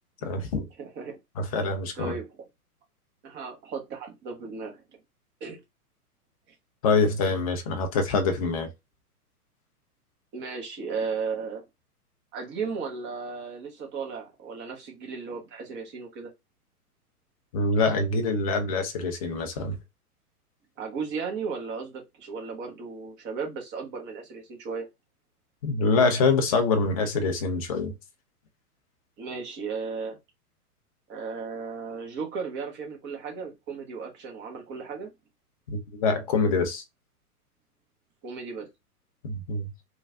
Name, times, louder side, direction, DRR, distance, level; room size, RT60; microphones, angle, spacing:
voice 1, 0.2-0.7 1.4-2.1 6.8-8.7 17.5-19.8 25.6-27.9 35.7-36.8 39.2-39.7, left 3 dB, 25° left, 0.4 m, -25 dB
voice 2, 0.8-1.2 1.9-2.3 3.2-4.8 5.4-5.6 10.3-11.6 12.3-16.3 20.8-24.9 29.2-30.2 31.1-35.1 38.2-38.7, right 5 dB, 25° right, 1.0 m, -35 dB
3.1 x 2.3 x 2.4 m
figure-of-eight pair, 110°, 46 cm